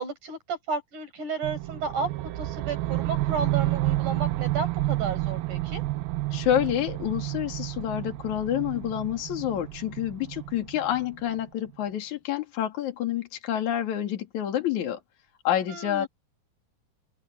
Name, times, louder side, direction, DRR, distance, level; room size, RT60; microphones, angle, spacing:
voice 1, 0.0-5.8 15.7-16.1, right 5 dB, 55° right, 8.4 m, -33 dB
sound 1, 1.4-11.5, right 17 dB, 75° right, 2.5 m, -30 dB
voice 2, 6.3-15.0 15.5-16.1, left 11 dB, 55° left, 3.5 m, -28 dB
omnidirectional pair, 4.4 m